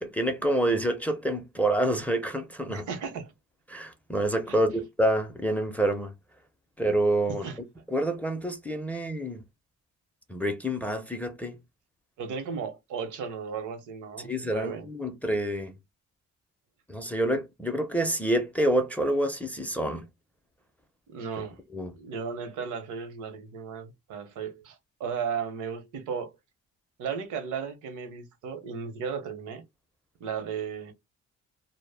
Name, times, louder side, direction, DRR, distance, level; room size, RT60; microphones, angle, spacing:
voice 1, 0.0-2.9 3.7-6.1 6.8-7.5 7.9-9.4 10.3-11.6 14.2-15.7 16.9-20.1 21.7-21.9, right 1 dB, 5° left, 0.4 m, -27 dB
voice 2, 2.7-3.3 4.5-4.6 7.4-7.6 8.9-9.0 12.2-14.9 21.1-21.6 22.0-26.3 27.0-29.6 30.2-30.9, right 6 dB, 80° right, 0.8 m, -35 dB
2.0 x 2.0 x 3.3 m
cardioid pair, 90°, 30 cm